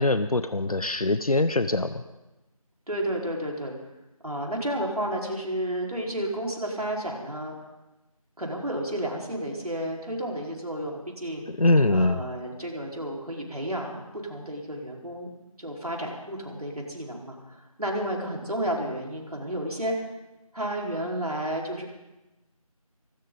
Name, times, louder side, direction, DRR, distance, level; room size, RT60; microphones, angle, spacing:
voice 1, 0.0-2.0 11.6-12.2, left 2 dB, 75° left, 12 dB, 0.8 m, -23 dB
voice 2, 2.9-3.8 4.2-7.5 8.4-11.4 11.9-15.3 15.6-19.9 20.5-21.9, right 1 dB, 80° right, -1 dB, 4.5 m, -31 dB
24.5 x 13.0 x 4.0 m, 1.0 s
figure-of-eight pair, 175°, 19 cm